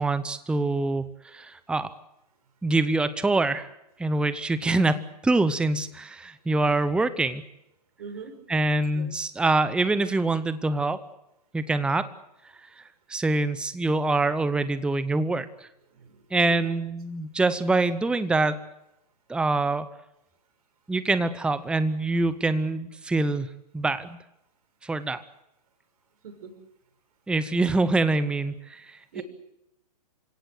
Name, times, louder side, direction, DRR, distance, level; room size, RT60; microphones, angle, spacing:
voice 1, 0.0-1.9 2.6-3.7 4.0-7.4 8.5-11.0 11.5-12.1 12.8-12.9 13.1-15.7 16.3-18.6 19.3-19.9 20.9-23.5 23.7-24.2 24.8-25.2 27.3-29.2, right 2 dB, 5° right, 14 dB, 0.8 m, -25 dB
voice 2, 8.0-8.3 8.9-9.1 15.9-16.8 26.2-26.5 29.1-29.2, right 6 dB, 60° right, 6 dB, 6.3 m, -41 dB
28.0 x 17.0 x 7.9 m, 0.87 s
figure-of-eight pair, 120°, 21 cm